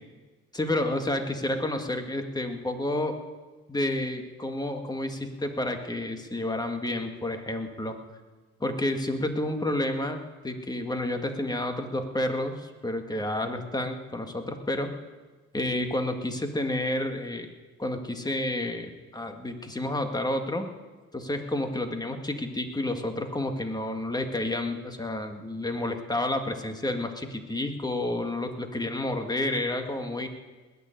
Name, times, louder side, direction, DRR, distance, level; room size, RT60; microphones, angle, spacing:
voice 1, 0.5-3.2 3.7-8.0 8.6-10.2 10.4-14.9 15.5-17.5 17.8-20.7 21.1-30.3, left 1 dB, 15° left, 5 dB, 1.9 m, -30 dB
20.0 x 7.0 x 9.1 m, 1.3 s
cardioid pair, 90°, 30 cm